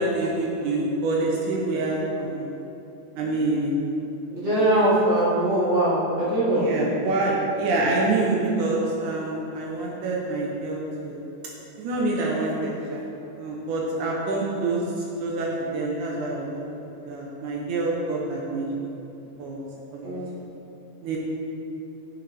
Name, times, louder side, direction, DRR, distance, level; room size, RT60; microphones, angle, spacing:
voice 1, 0.0-2.5 3.2-3.7 6.5-11.2 11.8-13.0 13.4-14.8 15.2-16.6 17.1-18.9 19.4-19.6 19.9-20.1 21.0-21.2, right 2 dB, 80° right, -3 dB, 2.3 m, -26 dB
voice 2, 4.3-6.7 20.0-20.4, right 1 dB, 40° right, -9 dB, 1.0 m, -22 dB
8.9 x 6.2 x 3.5 m, 2.8 s
omnidirectional pair, 3.5 m